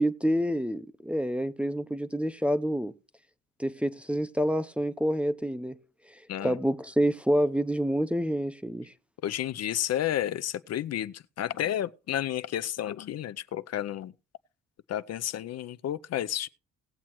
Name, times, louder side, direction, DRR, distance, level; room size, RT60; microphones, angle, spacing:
voice 1, 0.0-2.9 3.6-5.8 6.4-8.9, equal, 5° right, 0.6 m, -27 dB
voice 2, 9.2-14.1 14.9-16.5, left 11 dB, 55° left, 0.5 m, -31 dB
19.0 x 7.4 x 3.0 m
cardioid pair, 90°, 30 cm